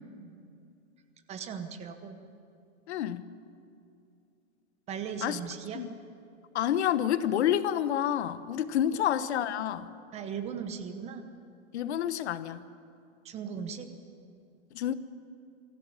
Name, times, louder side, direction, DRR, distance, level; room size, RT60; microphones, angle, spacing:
voice 1, 1.3-2.2 4.9-5.8 8.9-9.0 10.1-11.3 13.2-13.9, right 7 dB, 15° right, 8 dB, 0.9 m, -38 dB
voice 2, 2.9-3.2 5.2-5.4 5.7-5.9 6.5-9.9 11.7-12.6 14.7-14.9, left 10 dB, 55° left, 13 dB, 1.1 m, -28 dB
24.0 x 15.0 x 9.8 m, 2.5 s
hypercardioid pair, 155°, 39 cm